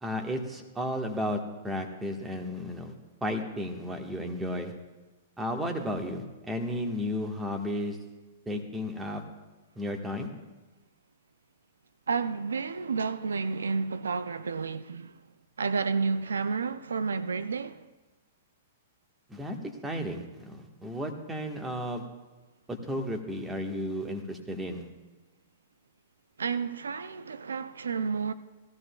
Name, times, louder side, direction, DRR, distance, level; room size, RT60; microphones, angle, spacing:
voice 1, 0.0-2.9 3.2-4.7 5.4-8.0 8.5-9.2 9.8-10.3 19.3-22.0 22.7-24.8, equal, 10° right, 1.4 m, -33 dB
voice 2, 12.1-15.2 15.6-17.8 26.4-28.3, right 5 dB, 90° right, 0.4 m, -31 dB
17.5 x 14.0 x 2.3 m
hypercardioid pair, 120°, 0 cm